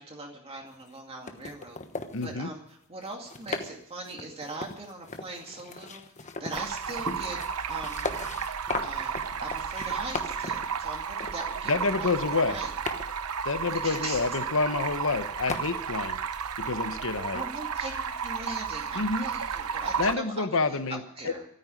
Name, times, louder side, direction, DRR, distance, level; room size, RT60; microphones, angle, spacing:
voice 1, 0.0-1.8 2.2-7.4 7.7-8.1 8.4-12.7 13.7-14.2 17.3-21.5, right 2 dB, 25° right, 1 dB, 2.3 m, -41 dB
sound 1, 0.7-1.0 1.3-2.3 3.0-3.7 4.0-10.7 11.2-11.4 12.1-13.1 14.5-14.6 14.8-15.1 15.5-15.6, left 3 dB, 35° left, 1.2 m, -37 dB
voice 2, 2.1-2.5 11.7-12.6 13.4-16.2 16.6-17.4 18.9-19.3 20.0-21.0 21.2-21.3, left 3 dB, 65° left, 11 dB, 1.1 m, -28 dB
Stream, 6.5-20.1, right 6 dB, 80° right, 0.8 m, -33 dB
13.5 x 9.6 x 10.0 m, 0.75 s
head